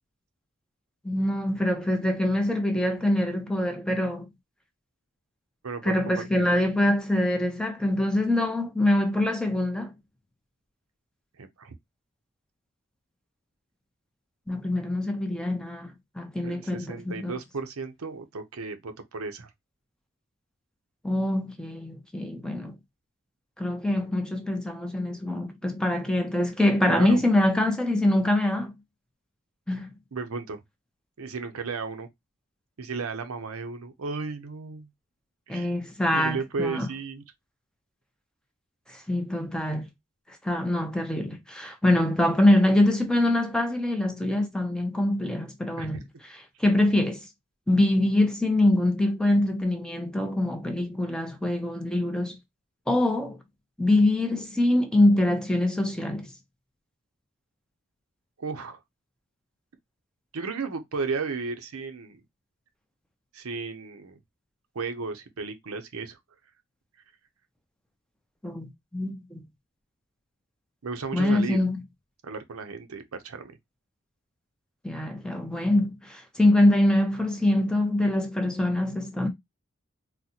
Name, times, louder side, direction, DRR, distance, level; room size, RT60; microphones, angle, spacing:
voice 1, 1.0-4.3 5.8-9.9 14.5-17.3 21.0-22.8 23.6-28.7 29.7-30.0 35.5-36.9 38.9-39.9 40.4-46.0 46.6-47.2 47.7-52.4 52.9-53.4 53.8-56.3 68.4-69.4 71.1-71.8 74.8-79.3, left 1 dB, 5° left, 0.5 m, -24 dB
voice 2, 5.6-6.5 11.4-11.7 16.4-19.5 26.9-27.2 30.1-30.6 31.2-32.1 32.8-34.9 35.5-35.7 36.1-37.2 45.8-45.9 58.4-58.8 60.3-62.2 63.3-64.2 64.7-66.2 70.8-71.6 72.2-73.5, right 4 dB, 90° right, 0.6 m, -34 dB
3.9 x 2.1 x 2.7 m
head